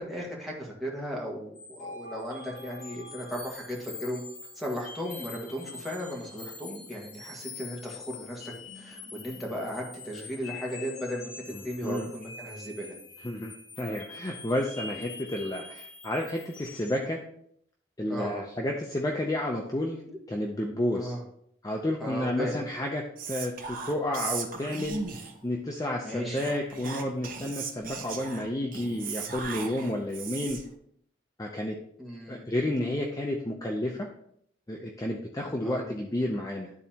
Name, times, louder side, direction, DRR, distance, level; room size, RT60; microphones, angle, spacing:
voice 1, 0.0-4.2 4.6-11.3 11.6-12.9 18.1-18.4 20.1-20.2 20.9-21.2 22.0-22.6 26.0-26.4 32.0-32.4 35.6-35.8, equal, ahead, -3 dB, 1.6 m, -36 dB
sound 1, 1.6-17.0, left 4 dB, 55° left, 1.6 m, -45 dB
voice 2, 11.5-12.1 13.2-17.2 18.0-20.0 20.3-21.1 21.6-30.6 31.4-31.8 32.3-34.1 34.7-36.7, left 1 dB, 20° left, 0 dB, 0.6 m, -31 dB
Whispering, 23.2-25.5 26.3-30.7, right 5 dB, 50° right, 0.9 m, -37 dB
12.0 x 4.1 x 2.9 m, 0.69 s
head